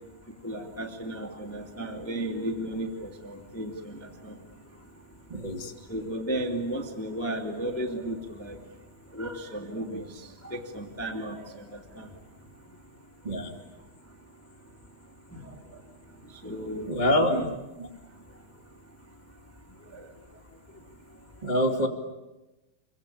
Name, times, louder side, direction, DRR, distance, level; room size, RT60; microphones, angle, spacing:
voice 1, 0.4-4.0 4.2-4.3 5.9-8.6 9.1-10.0 10.4-11.4 12.0-12.1 16.4-17.5 19.9-20.0 21.8-21.9, right 1 dB, 5° left, 3 dB, 1.0 m, -34 dB
voice 2, 5.3-5.7 13.2-13.5 16.9-17.4 17.8-17.9 21.4-21.9, left 1 dB, 25° right, 0 dB, 1.0 m, -25 dB
27.5 x 24.0 x 8.6 m, 1.0 s
omnidirectional pair, 5.2 m